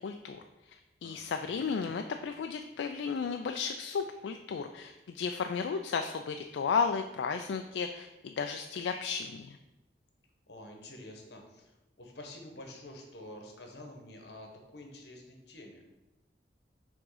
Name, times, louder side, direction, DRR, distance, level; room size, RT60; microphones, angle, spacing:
voice 1, 0.0-9.6, left 5 dB, 85° left, 6 dB, 0.3 m, -34 dB
voice 2, 1.0-1.6 10.5-15.8, left 1 dB, 70° left, 2 dB, 1.1 m, -49 dB
6.1 x 3.6 x 4.8 m, 1.0 s
head